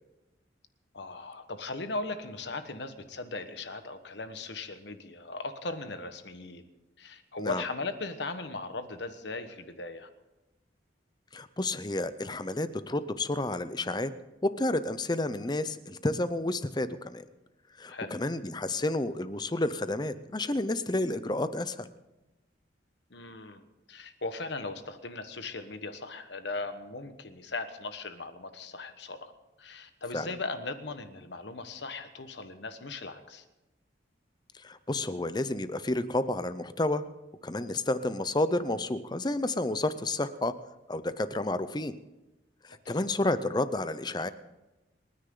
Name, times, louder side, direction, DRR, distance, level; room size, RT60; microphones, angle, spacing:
voice 1, 0.9-6.6 7.0-10.1 17.9-18.2 23.1-23.6 23.9-29.3 29.6-33.4 42.8-43.0, left 3 dB, 65° left, 9 dB, 1.3 m, -38 dB
voice 2, 11.3-14.1 14.4-17.2 17.8-21.9 30.1-30.3 34.6-37.0 37.4-40.5 40.9-41.9 42.6-44.3, left 2 dB, 20° left, 13 dB, 0.6 m, -30 dB
29.5 x 9.9 x 3.9 m, 1.0 s
head